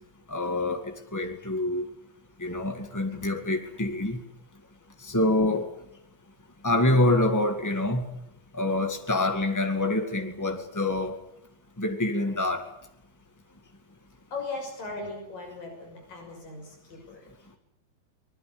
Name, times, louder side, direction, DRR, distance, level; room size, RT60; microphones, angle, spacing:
voice 1, 0.3-1.9 2.4-4.2 5.0-5.7 6.6-8.0 8.5-11.2 11.8-12.6, left 2 dB, 30° left, 0.3 m, -26 dB
voice 2, 14.3-17.6, left 3 dB, 55° left, 7.9 m, -39 dB
25.0 x 20.5 x 8.8 m
omnidirectional pair, 4.6 m